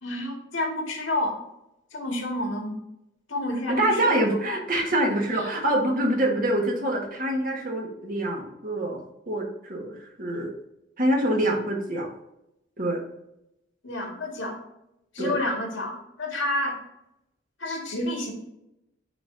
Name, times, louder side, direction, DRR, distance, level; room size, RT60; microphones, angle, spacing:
voice 1, 0.0-1.4 1.9-2.8 3.3-4.2 4.5-4.6 5.1-5.5 13.8-14.6 15.1-16.8 17.6-18.3, left 1 dB, 80° left, 1 dB, 1.9 m, -29 dB
voice 2, 3.8-9.0 9.3-10.5 11.0-12.1 12.8-13.0 15.2-15.3, right 1 dB, 45° right, 0 dB, 1.5 m, -25 dB
9.9 x 3.8 x 2.7 m, 0.85 s
head